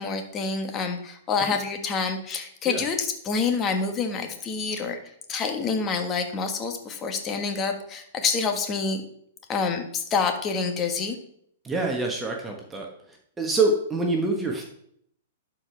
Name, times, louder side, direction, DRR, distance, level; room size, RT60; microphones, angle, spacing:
voice 1, 0.0-5.0 5.3-9.0 9.5-11.2, left 5 dB, 25° left, 5 dB, 1.4 m, -27 dB
voice 2, 11.6-12.9 13.4-14.6, right 3 dB, 15° right, 1 dB, 1.3 m, -26 dB
11.5 x 4.9 x 3.4 m, 0.68 s
hypercardioid pair, 110°, 0 cm